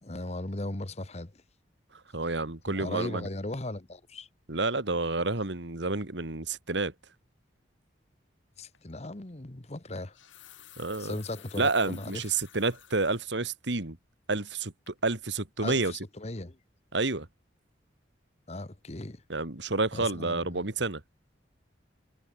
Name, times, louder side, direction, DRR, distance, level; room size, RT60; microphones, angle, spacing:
voice 1, 0.0-1.4 2.7-4.3 8.6-10.2 11.0-12.2 15.6-16.6 18.5-19.2 19.9-20.6, left 2 dB, 35° left, 1.2 m, -37 dB
voice 2, 2.1-3.3 4.5-6.9 10.8-11.1 11.6-14.0 14.3-15.9 16.9-17.3 19.3-21.0, right 3 dB, 70° right, 2.1 m, -29 dB
sound 1, 8.7-8.9 9.9-13.2 13.7-13.8 14.3-14.6 14.9-15.0, left 11 dB, 90° left, 5.3 m, -53 dB
head